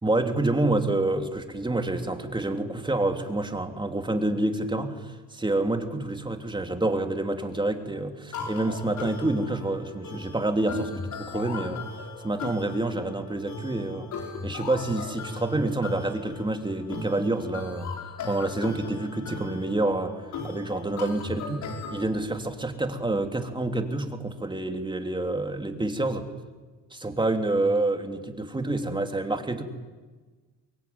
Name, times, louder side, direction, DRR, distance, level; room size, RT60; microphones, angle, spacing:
voice 1, 0.0-11.8 12.2-14.1 14.4-17.9 18.2-20.1 20.4-21.6 21.9-26.3 26.9-29.6, right 2 dB, 15° right, 5 dB, 3.1 m, -28 dB
sound 1, 8.3-22.0, left 3 dB, 70° left, 5.1 m, -37 dB
24.5 x 22.5 x 9.7 m, 1.3 s
cardioid pair, 90°, 30 cm